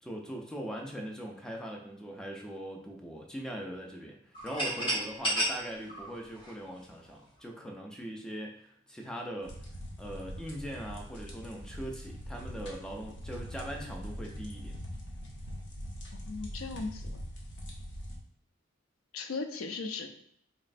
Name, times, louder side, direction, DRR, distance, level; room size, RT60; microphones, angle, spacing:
voice 1, 0.0-9.5 10.0-14.8, equal, 5° left, 0 dB, 0.4 m, -41 dB
sound 1, 4.3-7.1, right 1 dB, 25° left, 0.9 m, -32 dB
sound 2, 9.4-18.2, equal, 60° left, 0.8 m, -42 dB
voice 2, 16.1-17.1 19.1-20.1, left 4 dB, 85° left, 6 dB, 0.5 m, -37 dB
4.0 x 3.1 x 2.5 m, 0.69 s
head